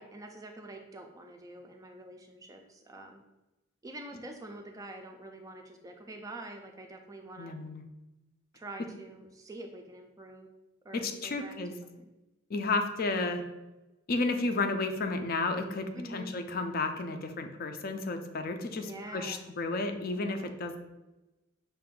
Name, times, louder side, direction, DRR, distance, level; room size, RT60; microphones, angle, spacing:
voice 1, 0.0-3.2 3.8-7.6 8.5-10.5 10.8-12.1 15.9-16.3 18.8-19.4, right 2 dB, 15° right, 4 dB, 0.3 m, -46 dB
voice 2, 7.4-7.8 10.9-11.7 12.5-13.4 14.1-20.8, left 3 dB, 45° left, 6 dB, 0.4 m, -32 dB
5.7 x 2.5 x 3.7 m, 1.0 s
head